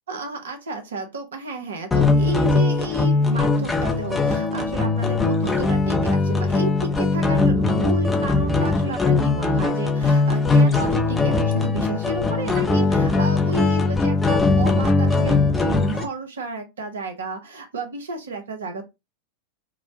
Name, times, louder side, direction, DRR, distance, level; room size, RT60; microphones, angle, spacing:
voice 1, 0.1-18.9, right 3 dB, 65° right, 0.7 m, -32 dB
sound 1, 1.9-16.0, left 3 dB, 10° left, 0.5 m, -20 dB
2.8 x 2.1 x 2.6 m
figure-of-eight pair, 90°, 0 cm